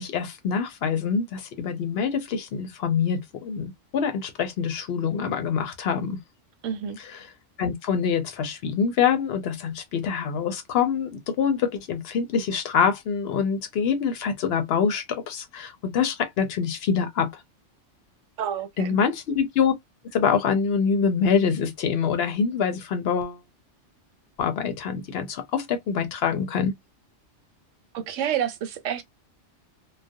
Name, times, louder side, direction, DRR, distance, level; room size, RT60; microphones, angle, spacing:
voice 1, 0.0-6.2 7.0-7.3 7.6-17.4 18.8-19.7 20.1-23.4 24.4-26.7, left 6 dB, 65° left, 0.7 m, -25 dB
voice 2, 6.6-7.0 18.4-19.0 27.9-29.0, right 9 dB, 85° right, 0.9 m, -29 dB
2.3 x 2.0 x 2.6 m
omnidirectional pair, 1.3 m